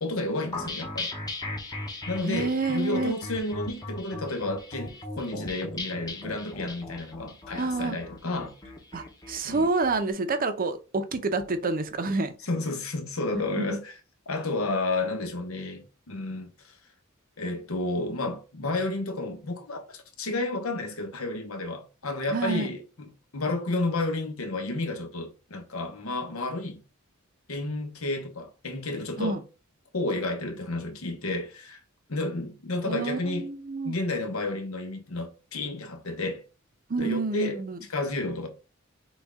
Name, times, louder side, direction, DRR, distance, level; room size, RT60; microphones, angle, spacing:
voice 1, 0.0-1.1 2.1-8.5 9.4-9.7 12.5-13.9 14.3-16.7 17.4-23.1 23.3-26.8 27.5-29.4 29.9-31.8 32.1-33.5 33.8-36.4 37.0-37.6 37.9-38.5, left 2 dB, 85° left, 1.1 m, -31 dB
sound 1, 0.5-10.0, left 2 dB, 20° left, 0.8 m, -38 dB
voice 2, 2.2-3.2 7.5-8.0 8.9-12.3 13.3-13.8 22.3-22.7 29.2-29.4 32.8-34.0 36.9-37.8, right 3 dB, 45° right, 0.6 m, -28 dB
6.2 x 2.4 x 3.6 m
head